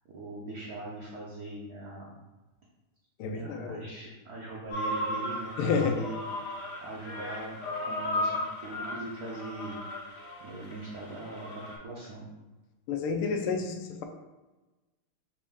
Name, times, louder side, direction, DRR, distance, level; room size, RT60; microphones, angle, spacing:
voice 1, 0.1-2.2 3.3-6.3 6.6-9.8 10.4-12.3, right 2 dB, 65° right, -4 dB, 0.9 m, -41 dB
voice 2, 3.2-3.9 5.6-6.0 12.9-14.0, left 5 dB, 85° left, 5 dB, 1.5 m, -30 dB
sound 1, 4.7-11.8, left 1 dB, 50° left, 0.9 m, -35 dB
5.2 x 2.6 x 3.5 m, 1.1 s
omnidirectional pair, 2.4 m